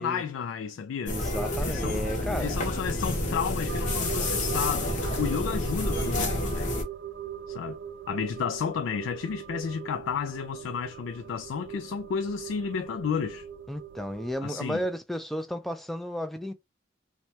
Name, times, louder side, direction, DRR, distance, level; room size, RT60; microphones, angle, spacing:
voice 1, 0.0-1.2 1.6-2.1 2.4-6.7 7.5-7.8 8.1-13.5 14.4-14.8, left 7 dB, 90° left, 0.3 m, -32 dB
sound 1, 1.1-6.8, left 1 dB, 40° left, 0.8 m, -29 dB
voice 2, 1.1-2.5 13.7-16.5, equal, ahead, 0.3 m, -33 dB
sound 2, 3.7-14.3, right 9 dB, 75° right, 0.4 m, -40 dB
3.1 x 2.2 x 2.7 m
head